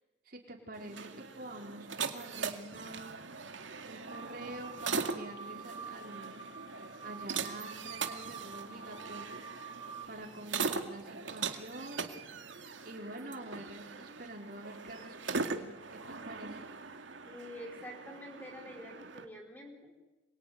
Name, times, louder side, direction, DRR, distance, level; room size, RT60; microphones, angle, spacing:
voice 1, 0.2-3.2 3.9-6.4 7.0-9.4 10.1-12.1 12.8-16.6, right 1 dB, 50° right, 1 dB, 4.5 m, -47 dB
sound 1, 0.7-19.2, right 5 dB, 80° right, 2.2 m, -40 dB
sound 2, 4.1-10.0, right 5 dB, 20° right, 2.2 m, -47 dB
voice 2, 17.2-19.9, equal, 10° left, 1 dB, 4.7 m, -47 dB
27.0 x 23.0 x 9.5 m, 1.1 s
head